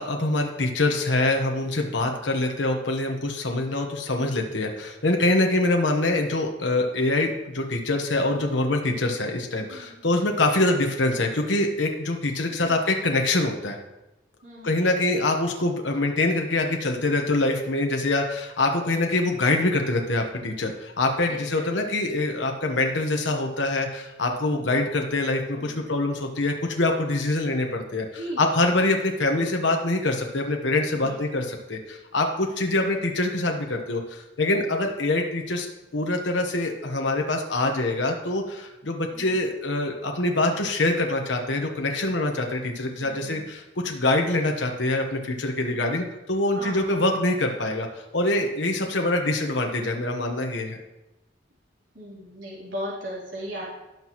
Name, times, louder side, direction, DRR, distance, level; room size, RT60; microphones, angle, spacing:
voice 1, 0.0-13.8 14.6-35.7 35.9-50.8, left 2 dB, 80° left, 2 dB, 1.2 m, -25 dB
voice 2, 9.6-10.1 12.5-12.7 14.4-14.9 21.3-21.4 25.6-25.8 28.2-28.7 31.0-31.2 39.1-39.4 43.0-43.5 46.5-46.9 51.9-53.7, equal, 80° right, -7 dB, 3.5 m, -38 dB
17.5 x 6.1 x 3.1 m, 0.97 s
head